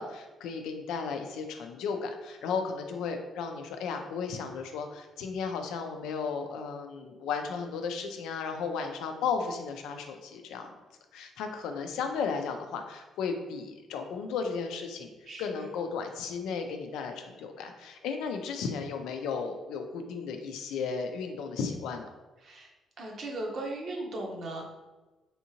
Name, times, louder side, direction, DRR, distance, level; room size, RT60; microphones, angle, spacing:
voice 1, 0.0-10.7 11.1-15.1 15.4-22.1, left 5 dB, 90° left, 5 dB, 0.4 m, -34 dB
voice 2, 15.3-15.7 22.4-22.7 23.0-24.6, right 2 dB, 60° right, 0 dB, 0.8 m, -37 dB
3.5 x 2.7 x 2.8 m, 1.2 s
cardioid pair, 90°, 0 cm